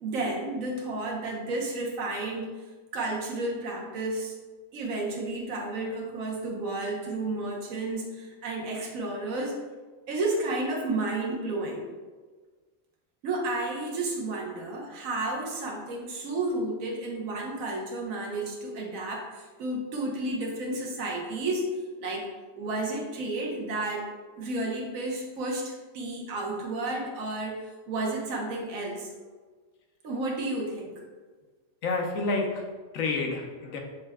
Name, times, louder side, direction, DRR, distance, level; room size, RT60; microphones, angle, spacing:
voice 1, 0.0-2.5 2.9-4.3 4.7-9.6 10.1-11.8 13.2-21.7 22.0-22.3 22.6-24.1 24.4-29.1 30.0-30.9, right 2 dB, 85° right, -1 dB, 1.3 m, -32 dB
voice 2, 31.8-33.8, left 3 dB, 80° left, 2 dB, 1.1 m, -29 dB
6.3 x 2.2 x 3.4 m, 1.4 s
omnidirectional pair, 1.4 m